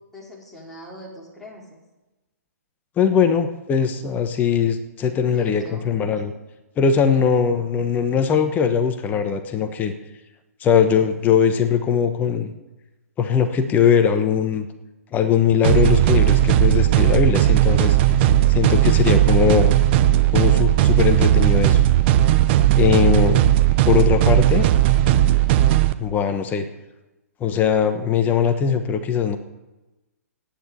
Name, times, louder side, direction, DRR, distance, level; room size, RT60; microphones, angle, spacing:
voice 1, 0.1-1.6 5.3-6.1 7.0-7.3 22.5-23.0, equal, 5° left, -5 dB, 4.8 m, -41 dB
voice 2, 3.0-6.3 6.8-9.9 10.6-12.5 13.2-14.7 15.1-18.0 18.5-19.7 20.3-21.8 22.8-23.5 23.9-24.7 26.0-26.6 27.4-29.4, left 7 dB, 20° left, 8 dB, 1.1 m, -20 dB
sound 1, 15.6-25.9, right 13 dB, 40° right, 0.8 m, -16 dB
13.5 x 9.7 x 8.2 m, 1.1 s
figure-of-eight pair, 125°, 9 cm